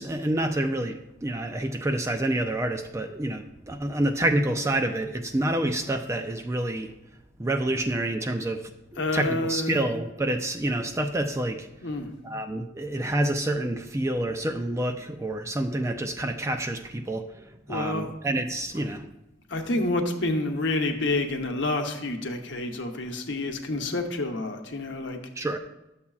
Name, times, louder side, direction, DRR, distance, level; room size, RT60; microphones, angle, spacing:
voice 1, 0.0-6.9 7.4-11.7 12.2-19.1 25.4-25.6, right 1 dB, 15° right, 6 dB, 0.3 m, -28 dB
voice 2, 9.0-9.8 11.8-12.1 17.7-18.1 19.5-25.2, left 2 dB, 60° left, 4 dB, 0.9 m, -28 dB
12.0 x 7.0 x 2.4 m, 0.94 s
head